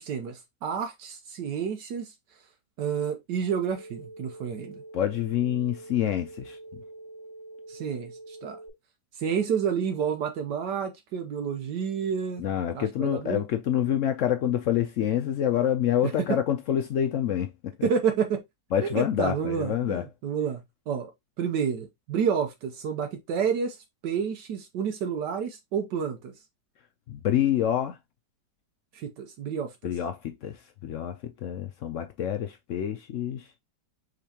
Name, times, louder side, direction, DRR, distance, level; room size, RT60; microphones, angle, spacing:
voice 1, 0.0-2.1 2.8-4.8 7.7-8.6 9.2-12.4 12.7-13.4 16.3-16.4 17.8-18.4 18.8-21.1 21.4-23.8 24.0-26.3 28.9-29.7, right 7 dB, 80° right, 1.4 m, -29 dB
sound 1, 3.7-8.7, right 2 dB, ahead, 1.4 m, -45 dB
voice 2, 4.9-6.6 12.4-17.9 18.7-20.1 27.1-28.0 29.8-33.5, left 10 dB, 75° left, 0.7 m, -27 dB
5.1 x 3.7 x 2.8 m
omnidirectional pair, 1.8 m